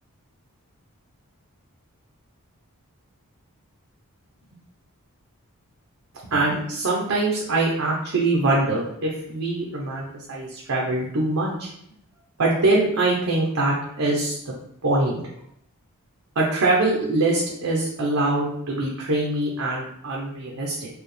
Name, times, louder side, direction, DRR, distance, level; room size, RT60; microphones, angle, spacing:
voice 1, 6.2-11.7 12.4-14.3 14.8-15.2 16.4-20.9, right 2 dB, 65° right, -3 dB, 0.7 m, -23 dB
4.7 x 2.3 x 3.2 m, 0.72 s
head